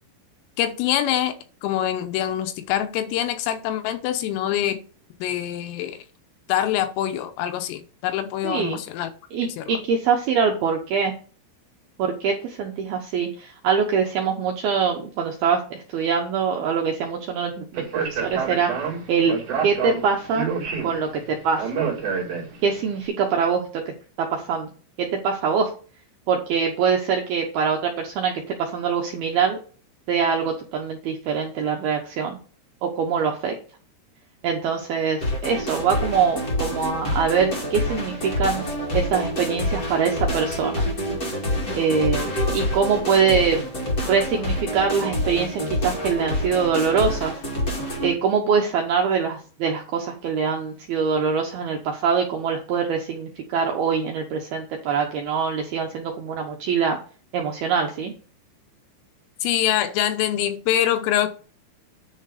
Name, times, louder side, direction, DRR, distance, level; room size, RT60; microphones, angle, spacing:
voice 1, 0.6-1.3 1.6-4.8 5.2-6.0 6.5-9.1 9.4-9.8 59.4-61.3, left 11 dB, 80° left, 3.5 m, -24 dB
voice 2, 8.4-8.8 9.3-11.1 12.0-18.7 19.1-19.4 19.6-20.5 20.8-21.7 22.6-23.8 24.2-24.7 25.0-25.7 26.3-29.6 30.1-32.4 32.8-33.6 34.4-38.6 38.9-40.8 41.7-43.6 44.1-47.3 48.0-57.0 57.3-58.1, right 6 dB, 75° right, 2.3 m, -23 dB
Speech, 17.7-22.8, right 6 dB, 50° right, 2.0 m, -28 dB
sound 1, 35.2-48.1, left 1 dB, 50° left, 1.1 m, -27 dB
10.0 x 4.5 x 6.6 m
omnidirectional pair, 6.0 m